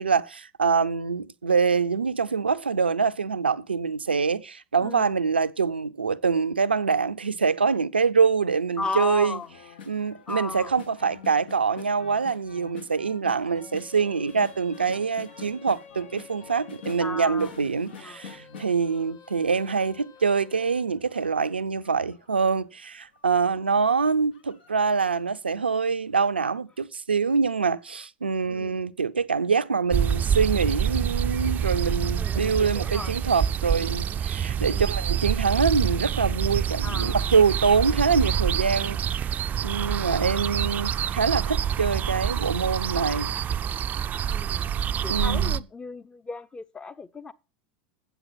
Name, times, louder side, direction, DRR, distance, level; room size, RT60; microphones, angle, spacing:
voice 1, 0.0-9.4 9.9-39.3 39.6-43.3 45.1-45.6, right 5 dB, 85° right, 0.5 m, -25 dB
voice 2, 4.8-5.1 8.8-9.5 10.3-10.7 17.0-17.5 18.0-18.2 28.5-28.9 32.2-33.1 34.6-34.9 36.8-37.2 44.3-44.7 45.0-47.3, left 4 dB, 15° left, 0.8 m, -35 dB
sound 1, 9.4-19.7 20.2-22.6 23.1-23.2 23.5-23.8 24.3-25.3 25.6-25.7, left 6 dB, 70° left, 1.8 m, -46 dB
sound 2, 13.3-17.3 17.9-20.9, left 6 dB, 35° left, 1.8 m, -51 dB
sound 3, 29.9-45.6, right 8 dB, 30° right, 0.4 m, -27 dB
8.0 x 7.9 x 7.2 m
figure-of-eight pair, 80°, 5 cm